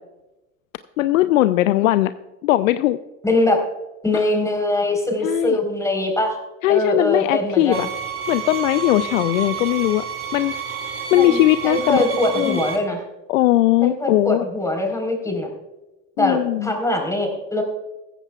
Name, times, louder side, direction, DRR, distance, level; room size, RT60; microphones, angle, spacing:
voice 1, 1.0-2.1 2.4-3.0 4.1-4.3 5.2-5.6 6.6-7.9 8.3-10.0 10.3-10.5 11.1-12.0 12.4-12.6 13.3-14.5 16.2-16.7, left 15 dB, 80° left, 13 dB, 0.5 m, -19 dB
voice 2, 3.2-3.6 4.0-6.4 6.7-7.9 11.1-11.4 11.6-13.0 13.8-15.5 16.2-17.6, left 1 dB, 10° left, 2 dB, 4.1 m, -22 dB
sound 1, 7.7-12.8, right 7 dB, 35° right, 2.6 m, -30 dB
15.5 x 14.0 x 2.4 m, 1.0 s
hypercardioid pair, 65°, 40 cm